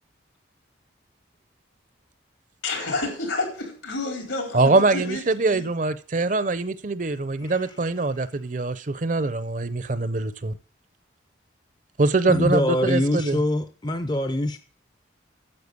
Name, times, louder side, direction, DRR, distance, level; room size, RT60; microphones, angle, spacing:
voice 1, 2.6-5.6, left 3 dB, 80° left, 4.4 m, -30 dB
voice 2, 4.5-10.5 12.0-13.4, right 3 dB, 40° right, 0.6 m, -23 dB
voice 3, 7.4-7.8 12.3-14.6, left 1 dB, 20° left, 0.5 m, -24 dB
9.7 x 7.5 x 6.7 m
head